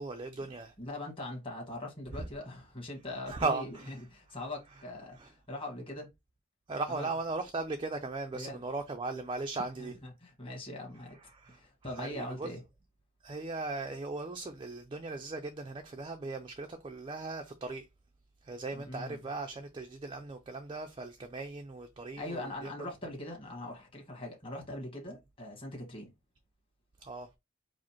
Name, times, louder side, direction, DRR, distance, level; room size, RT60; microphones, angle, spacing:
voice 1, 0.0-0.7 3.3-3.9 5.2-5.3 6.7-9.9 11.3-11.6 12.0-12.5 13.2-17.9 18.4-22.7 27.0-27.3, right 3 dB, 25° right, 0.4 m, -37 dB
voice 2, 0.8-6.1 6.9-7.1 8.3-8.6 9.8-11.2 11.5-12.6 18.7-19.3 22.2-26.1, left 1 dB, 25° left, 1.5 m, -42 dB
4.9 x 2.1 x 4.4 m
head